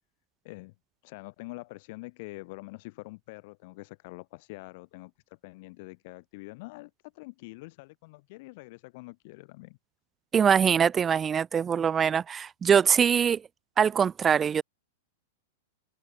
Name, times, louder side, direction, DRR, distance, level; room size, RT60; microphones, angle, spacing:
voice 1, 1.0-9.8, left 24 dB, 55° left, 6.1 m, -45 dB
voice 2, 10.3-13.4 13.8-14.6, right 7 dB, 20° right, 0.7 m, -23 dB
hypercardioid pair, 125°, 0 cm